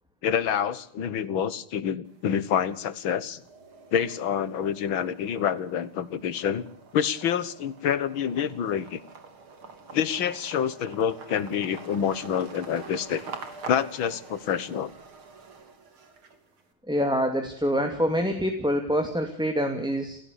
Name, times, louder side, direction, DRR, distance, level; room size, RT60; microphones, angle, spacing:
voice 1, 0.2-3.4 3.9-6.7 6.9-9.0 9.9-13.2 13.7-14.9, left 8 dB, 65° left, 16 dB, 2.1 m, -27 dB
sound 1, 2.1-2.7 3.1-16.6, right 4 dB, 75° right, 3.9 m, -46 dB
voice 2, 16.9-20.2, equal, ahead, 5 dB, 2.5 m, -26 dB
29.5 x 16.0 x 8.4 m, 0.63 s
omnidirectional pair, 2.4 m